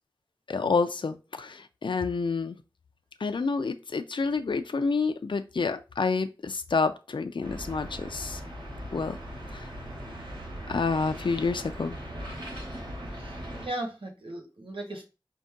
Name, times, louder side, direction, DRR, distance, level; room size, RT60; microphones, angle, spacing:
voice 1, 0.5-2.6 3.2-8.4 8.9-9.1 9.5-9.7 10.7-12.0 12.2-12.3, left 4 dB, 70° left, 8 dB, 0.4 m, -28 dB
sound 1, 7.4-13.7, equal, 65° right, 2.4 m, -39 dB
voice 2, 13.2-15.0, right 1 dB, 85° right, 0 dB, 1.4 m, -37 dB
5.2 x 2.7 x 3.6 m, 0.30 s
wide cardioid pair, 50°, 9 cm